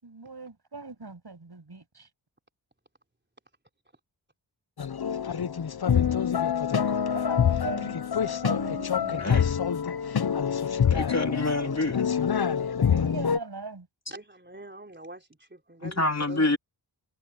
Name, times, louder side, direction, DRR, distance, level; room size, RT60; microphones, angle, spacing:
voice 1, 0.0-2.1 7.1-8.0 8.2-9.3 12.9-13.9, right 4 dB, 60° right, 7.2 m, -40 dB
sound 1, 4.8-13.4, left 7 dB, 55° left, 0.8 m, -26 dB
voice 2, 9.1-9.5 10.8-12.0 15.8-16.6, left 2 dB, 35° left, 3.0 m, -27 dB
voice 3, 14.1-16.5, right 1 dB, 25° right, 4.0 m, -44 dB
wide cardioid pair, 45°, 45 cm